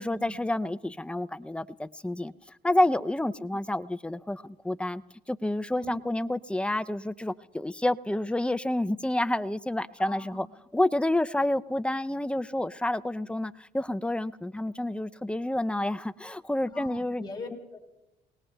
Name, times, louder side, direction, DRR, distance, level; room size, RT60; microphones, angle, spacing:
voice 1, 0.0-2.3 2.6-5.0 5.3-10.5 10.7-17.2, left 1 dB, 5° left, 14 dB, 0.5 m, -29 dB
voice 2, 10.0-10.4 16.7-17.8, left 2 dB, 25° left, 1 dB, 4.4 m, -42 dB
28.0 x 19.0 x 2.2 m, 1.0 s
supercardioid pair, 75°, 18 cm